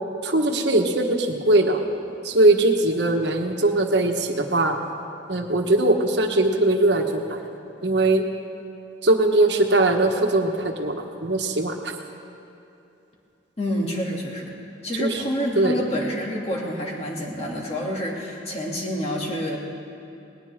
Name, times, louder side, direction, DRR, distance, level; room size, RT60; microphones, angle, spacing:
voice 1, 0.2-1.8 2.2-4.7 5.3-7.4 7.8-8.2 9.0-11.7 15.0-15.1 15.6-15.7, right 2 dB, 65° right, 4 dB, 1.4 m, -20 dB
voice 2, 13.6-14.4 14.8-19.6, equal, 35° left, -3 dB, 2.5 m, -28 dB
19.5 x 19.5 x 3.7 m, 2.7 s
head